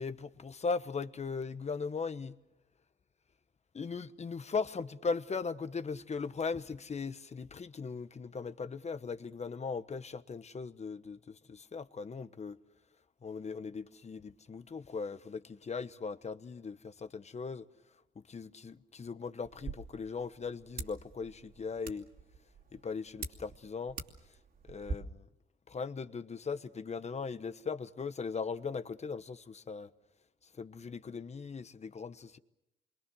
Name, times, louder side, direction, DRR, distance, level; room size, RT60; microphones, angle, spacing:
voice 1, 0.0-2.3 3.7-12.6 13.2-17.7 18.3-22.1 22.7-24.0 24.6-25.3 25.7-29.9 30.6-32.4, left 5 dB, 35° left, 1.1 m, -39 dB
sound 1, 19.4-24.9, right 4 dB, 45° right, 2.8 m, -45 dB
28.0 x 23.5 x 6.3 m
cardioid pair, 90°, 20 cm